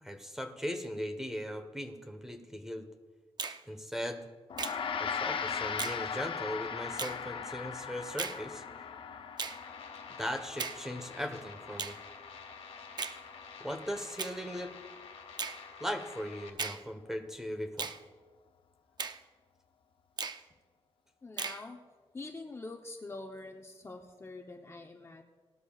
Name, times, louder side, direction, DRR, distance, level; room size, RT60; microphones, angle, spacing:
voice 1, 0.0-2.9 3.7-4.3 5.0-8.6 10.2-12.0 13.6-14.7 15.8-17.9, equal, 5° right, 6 dB, 1.1 m, -38 dB
Finger snapping, 3.4-3.6 4.6-4.8 5.8-6.0 7.0-7.2 8.2-8.4 9.4-9.6 10.6-10.8 11.8-12.0 13.0-13.2 14.2-14.4 15.4-15.6 16.6-16.8 17.8-18.0 19.0-19.2 20.2-20.4 21.4-21.6, right 5 dB, 45° right, 0.5 m, -37 dB
Gong, 4.5-14.0, left 6 dB, 60° left, 0.7 m, -39 dB
sound 1, 9.5-16.5, left 5 dB, 75° left, 1.5 m, -49 dB
voice 2, 21.2-21.8 22.1-25.2, left 2 dB, 25° left, 3 dB, 0.8 m, -45 dB
18.5 x 12.5 x 2.4 m, 1.4 s
wide cardioid pair, 130°, 10 cm